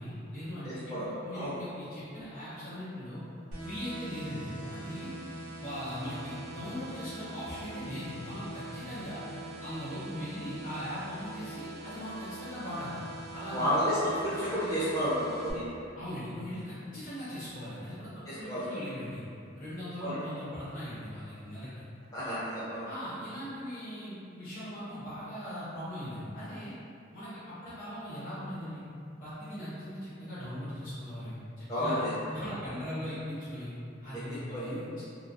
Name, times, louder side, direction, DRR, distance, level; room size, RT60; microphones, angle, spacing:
voice 1, 0.0-3.2 3.6-5.1 5.6-9.2 9.6-13.0 13.3-13.8 16.0-19.2 19.6-21.7 22.8-26.7 27.1-28.8 29.2-32.0 32.3-33.7 34.0-35.0, equal, 45° left, -12 dB, 0.9 m, -39 dB
voice 2, 0.6-1.1 1.3-1.5 13.5-15.6 18.3-18.6 20.0-20.2 22.1-22.9 31.7-32.1 34.5-34.7, equal, 20° left, -12 dB, 0.4 m, -31 dB
sound 1, 3.5-15.5, right 2 dB, 75° right, 0.5 m, -44 dB
2.3 x 2.2 x 2.5 m, 2.5 s
head